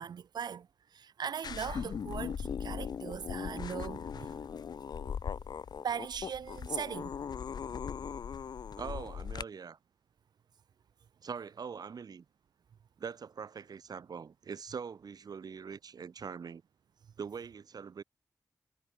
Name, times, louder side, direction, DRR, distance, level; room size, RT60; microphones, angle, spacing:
voice 1, 0.0-4.4 5.8-7.3, right 7 dB, 90° right, 1.1 m, -39 dB
sound 1, 1.4-9.4, left 7 dB, 80° left, 1.8 m, -39 dB
voice 2, 8.7-9.8 11.2-12.2 13.0-16.6 17.2-18.0, right 6 dB, 70° right, 3.0 m, -43 dB
wide cardioid pair, 105°, 7 cm